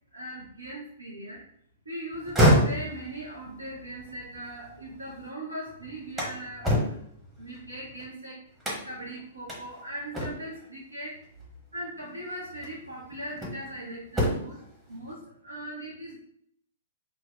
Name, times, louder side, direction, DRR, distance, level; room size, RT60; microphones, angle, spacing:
voice 1, 0.1-1.4 1.8-6.8 7.4-8.4 8.8-11.2 11.7-14.6 14.9-16.2, right 1 dB, 80° right, -3 dB, 0.6 m, -39 dB
sound 1, 2.1-5.3 5.7-8.1 8.6-9.1 9.5-9.6 10.1-10.7 11.9-12.0 12.6-13.7 14.1-14.7, equal, 10° right, 0.9 m, -27 dB
2.8 x 2.1 x 3.8 m, 0.67 s
figure-of-eight pair, 110°, 0 cm